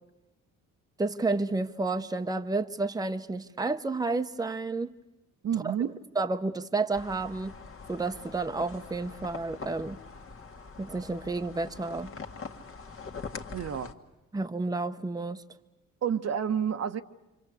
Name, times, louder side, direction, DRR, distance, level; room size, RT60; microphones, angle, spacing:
voice 1, 1.0-4.9 5.6-5.7 6.1-7.5 7.9-10.0 10.8-12.1 14.3-15.4, right 3 dB, 10° right, 1.0 m, -31 dB
voice 2, 5.4-5.9 13.5-13.9 16.0-17.0, right 8 dB, 55° right, 1.2 m, -29 dB
sound 1, 6.9-13.9, left 4 dB, 45° left, 1.9 m, -43 dB
27.5 x 25.0 x 8.4 m
cardioid pair, 90°, 30 cm